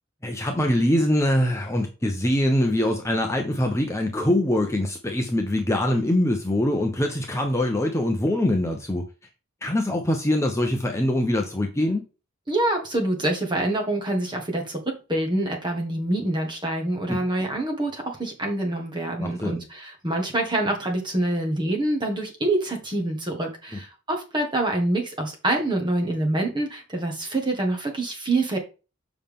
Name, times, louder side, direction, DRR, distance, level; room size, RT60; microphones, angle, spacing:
voice 1, 0.2-9.0 9.6-12.0 17.1-17.2 19.2-19.6, left 1 dB, 15° left, 0.8 m, -23 dB
voice 2, 12.5-28.6, right 1 dB, 20° right, 1.6 m, -26 dB
7.2 x 5.6 x 3.6 m
head